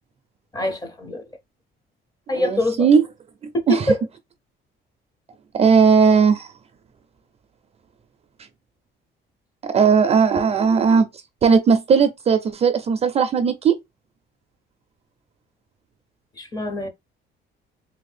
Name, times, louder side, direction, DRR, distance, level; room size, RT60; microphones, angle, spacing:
voice 1, 0.5-1.3 2.3-2.9 3.5-4.0 16.4-16.9, left 1 dB, 20° left, 0.6 m, -24 dB
voice 2, 2.3-3.0 3.7-3.9 5.5-6.5 9.6-11.1 11.4-13.8, right 6 dB, 30° right, 0.4 m, -17 dB
3.3 x 2.6 x 3.2 m
cardioid pair, 170°, 21 cm